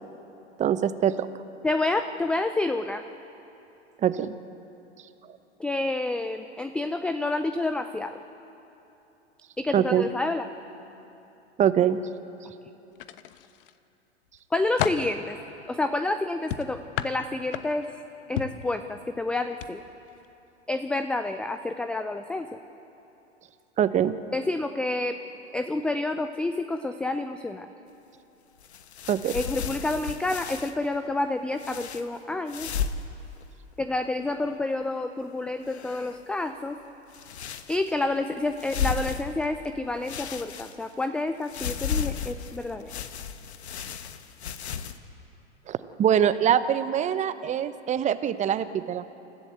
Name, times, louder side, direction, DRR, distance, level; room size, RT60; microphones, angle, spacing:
voice 1, 0.6-1.3 4.0-4.3 9.7-10.0 11.6-12.0 23.8-24.2 29.1-29.3 45.7-49.0, right 9 dB, 20° right, 13 dB, 0.8 m, -23 dB
voice 2, 1.6-3.0 5.6-8.2 9.6-10.5 14.5-15.4 15.7-17.9 18.3-19.8 20.7-22.6 24.3-25.2 25.5-27.7 29.3-32.7 33.8-36.8 37.7-42.9, left 2 dB, 5° left, 8 dB, 0.4 m, -29 dB
sound 1, 12.9-13.8 14.3-15.1 16.5-17.9 18.4-18.7 19.5-19.7 20.1-20.3, left 11 dB, 50° left, 1.0 m, -32 dB
sound 2, 28.6-30.8 31.6-32.0 32.5-33.1 33.4-33.5 34.0-34.6 35.6-36.3 37.1-38.0 38.5-39.7 40.0-41.0 41.5-45.0, left 7 dB, 70° left, 1.3 m, -34 dB
28.0 x 14.5 x 8.0 m, 3.0 s
figure-of-eight pair, 100°, 34 cm